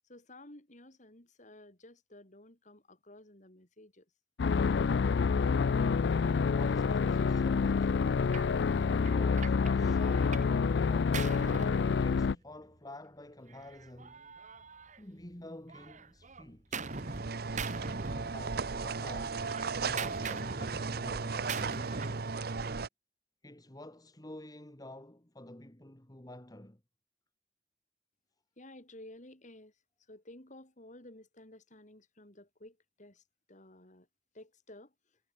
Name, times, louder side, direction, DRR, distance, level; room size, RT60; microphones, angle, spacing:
voice 1, 0.0-4.1 28.6-29.7 30.1-34.1 34.3-34.9, left 1 dB, 45° left, 4.7 m, -53 dB
sound 1, 4.4-12.4, left 5 dB, 70° left, 0.4 m, -28 dB
voice 2, 6.3-8.0 8.9-11.3 11.7-14.2 15.0-16.9 18.1-19.5 19.8-22.3 23.4-26.8, left 1 dB, 20° left, 2.1 m, -49 dB
Gunshot gunfire, 8.3-8.5 9.1-10.6 10.8-12.6 13.5-15.3 15.7-17.3 17.6-18.8 19.1-22.3, right 4 dB, 45° right, 1.8 m, -42 dB
sound 2, 16.8-22.9, right 4 dB, 60° right, 0.8 m, -36 dB
head